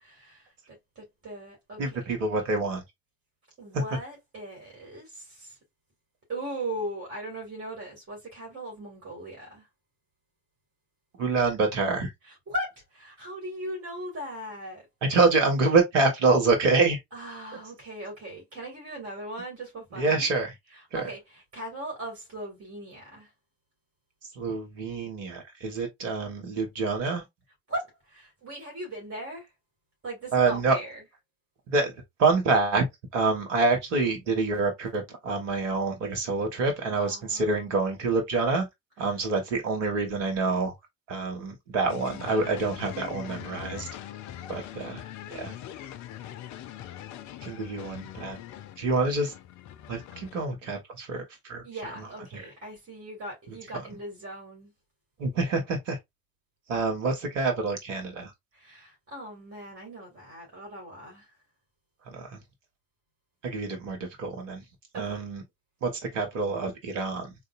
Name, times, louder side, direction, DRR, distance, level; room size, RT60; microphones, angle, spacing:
voice 1, 0.0-2.0 3.6-5.6 6.3-9.7 12.2-14.9 17.1-20.3 20.7-23.3 27.7-29.5 30.0-31.0 37.0-37.8 44.5-44.7 45.8-46.0 51.6-54.7 58.5-61.3 64.9-65.2, right 1 dB, 40° right, 2.3 m, -39 dB
voice 2, 1.8-2.8 3.7-3.8 11.2-12.1 15.0-17.0 20.0-20.5 20.9-21.0 24.3-27.2 30.3-30.8 31.7-31.9 32.2-32.8 33.1-38.7 39.0-40.7 41.1-43.9 44.5-45.1 45.3-45.6 47.4-48.4 48.8-49.3 49.9-51.6 52.0-52.1 52.3-52.4 55.2-56.0 56.7-58.3 62.1-62.4 63.4-64.6 64.9-65.4 65.8-67.3, right 3 dB, 75° right, 1.2 m, -26 dB
sound 1, 41.9-50.4, left 11 dB, 50° left, 0.5 m, -42 dB
3.8 x 2.8 x 2.4 m
figure-of-eight pair, 55°, 38 cm